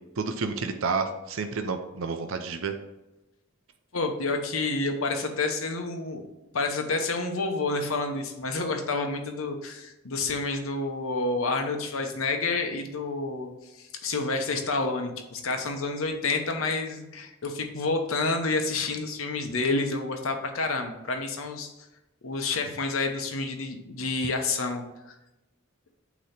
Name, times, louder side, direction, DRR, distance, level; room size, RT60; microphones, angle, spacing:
voice 1, 0.2-2.7, right 4 dB, 75° right, 7 dB, 0.6 m, -30 dB
voice 2, 3.9-6.2 6.5-21.7 22.2-24.8, left 3 dB, 85° left, 5 dB, 1.0 m, -29 dB
8.4 x 3.1 x 5.8 m, 0.98 s
head